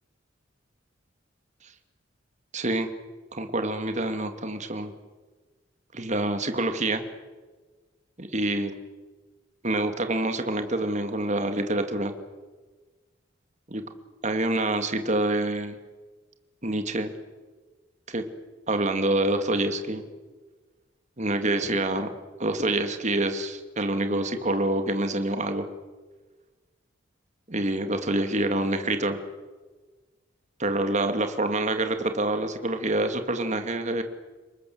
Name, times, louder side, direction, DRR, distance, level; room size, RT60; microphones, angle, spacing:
voice 1, 2.5-2.9 3.3-4.9 5.9-7.0 8.2-8.7 9.6-12.1 13.7-13.8 14.2-15.8 16.6-17.1 18.1-18.2 18.7-20.0 21.2-22.1 22.4-25.7 27.5-29.2 30.6-34.0, right 2 dB, 40° right, 7 dB, 2.4 m, -26 dB
30.0 x 20.5 x 7.9 m, 1.3 s
head